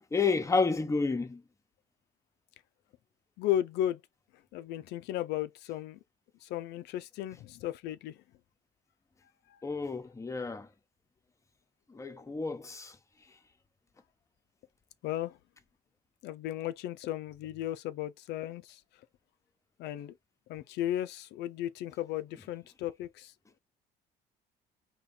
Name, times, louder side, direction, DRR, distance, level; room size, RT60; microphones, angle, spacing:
voice 1, 0.1-1.4 9.6-10.7 11.9-13.0, left 4 dB, 15° left, 1.0 m, -30 dB
voice 2, 3.4-4.0 4.5-6.0 6.4-8.2 9.5-9.6 15.0-15.4 16.2-18.8 19.8-20.1 20.5-23.3, left 12 dB, 80° left, 0.5 m, -35 dB
4.3 x 3.0 x 4.0 m
cardioid pair, 110°, 17 cm